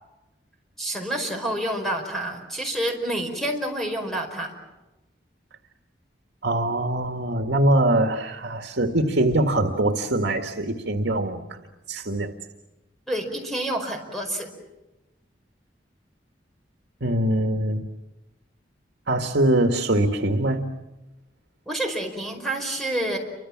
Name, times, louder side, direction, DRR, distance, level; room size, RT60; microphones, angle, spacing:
voice 1, 0.8-4.5 13.1-14.5 21.7-23.2, right 1 dB, ahead, 2 dB, 5.1 m, -28 dB
voice 2, 6.4-11.6 11.9-12.3 17.0-17.8 19.1-20.7, right 1 dB, 75° right, 5 dB, 1.8 m, -23 dB
29.5 x 25.5 x 7.4 m, 1.0 s
head